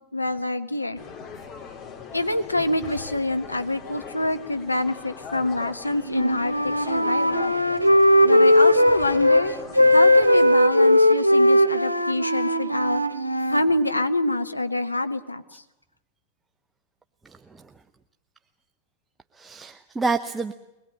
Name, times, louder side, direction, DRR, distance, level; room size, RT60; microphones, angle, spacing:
voice 1, 0.1-1.0 2.1-7.5 8.2-9.5 9.9-13.0 13.5-15.6, left 2 dB, 85° left, 9 dB, 1.2 m, -26 dB
sound 1, 1.0-10.5, left 6 dB, 35° left, 4.0 m, -40 dB
Wind instrument woodwind instrument, 6.1-9.4 9.7-13.6, left 1 dB, 90° right, 1.1 m, -18 dB
voice 2, 17.2-17.7 19.3-20.5, right 3 dB, 15° right, 7 dB, 0.9 m, -29 dB
23.0 x 20.5 x 8.8 m, 0.96 s
figure-of-eight pair, 90°, 0 cm